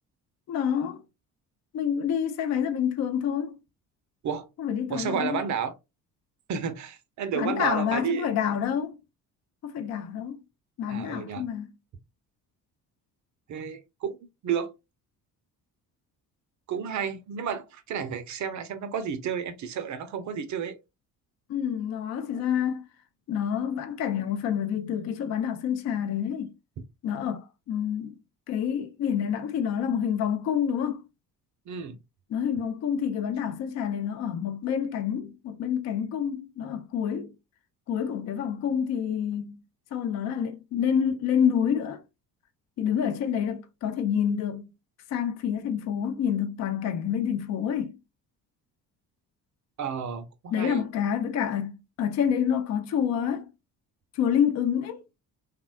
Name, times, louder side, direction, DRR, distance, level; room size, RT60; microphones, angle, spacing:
voice 1, 0.5-1.0 1.7-3.6 4.6-5.5 7.3-9.0 9.6-10.4 10.8-11.7 21.5-22.8 23.3-26.5 27.0-28.2 28.5-31.1 32.3-37.3 37.9-39.6 39.9-42.0 42.8-44.7 45.1-48.0 50.5-53.5 54.1-55.0, left 8 dB, 35° left, 0.5 m, -28 dB
voice 2, 4.9-5.7 6.5-8.3 10.9-11.4 13.5-14.2 14.4-14.7 16.7-20.7 31.7-32.0 49.8-50.8, right 7 dB, 40° right, 0.5 m, -31 dB
3.4 x 2.1 x 2.3 m
figure-of-eight pair, 45°, 48 cm